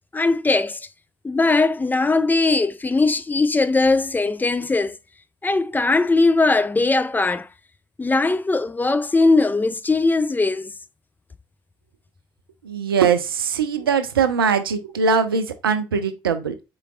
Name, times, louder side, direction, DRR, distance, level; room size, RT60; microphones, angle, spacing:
voice 1, 0.1-0.9 1.2-5.0 5.4-7.5 8.0-10.7, left 3 dB, 15° left, 0.4 m, -20 dB
voice 2, 12.6-16.5, right 6 dB, 85° right, 0.4 m, -21 dB
4.5 x 3.7 x 2.3 m
figure-of-eight pair, 45°, 12 cm